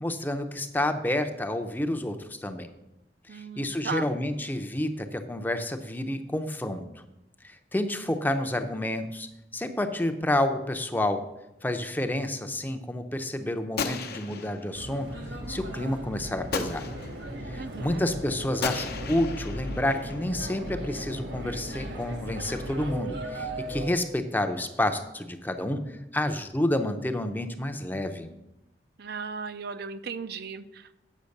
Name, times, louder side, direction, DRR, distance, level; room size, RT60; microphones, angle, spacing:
voice 1, 0.0-2.7 3.3-6.8 7.4-9.3 9.5-11.2 11.6-15.1 15.5-16.8 17.5-25.8 26.1-28.3, left 1 dB, 10° left, 7 dB, 0.6 m, -29 dB
voice 2, 3.3-4.1 17.6-18.0 29.0-30.9, right 5 dB, 60° right, 10 dB, 0.5 m, -36 dB
Gunshot gunfire, 13.8-14.9 16.5-17.3 18.6-20.3, left 5 dB, 60° left, 0.8 m, -35 dB
sound 1, 14.7-23.9, right 1 dB, 75° right, 1.7 m, -37 dB
8.3 x 6.1 x 6.5 m, 0.91 s
head